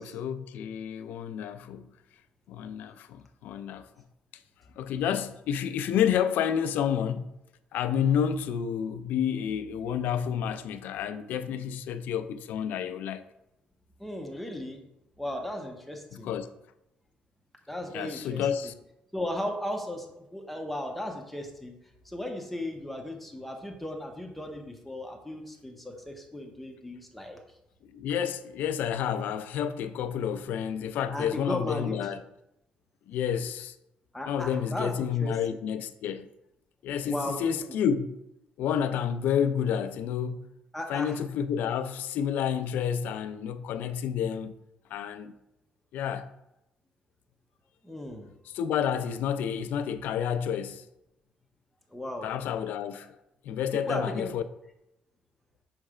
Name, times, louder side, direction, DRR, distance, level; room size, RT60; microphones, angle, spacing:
voice 1, 0.0-1.9 2.5-3.9 4.8-7.3 7.7-13.2 16.1-16.5 17.9-18.7 27.8-32.2 33.1-33.7 34.2-36.3 36.8-38.2 38.6-40.5 40.9-44.5 44.9-45.3 45.9-46.3 48.5-50.8 52.2-53.1 53.4-54.4, left 8 dB, 75° left, 0.4 m, -30 dB
voice 2, 14.0-14.8 15.2-16.3 17.7-18.7 19.1-21.7 22.0-27.4 31.1-32.0 34.1-35.3 37.0-37.6 40.7-41.1 47.8-48.3 51.9-52.3 53.9-54.3, left 1 dB, 5° left, 0.7 m, -36 dB
6.4 x 3.2 x 4.9 m
cardioid pair, 175°, 3 cm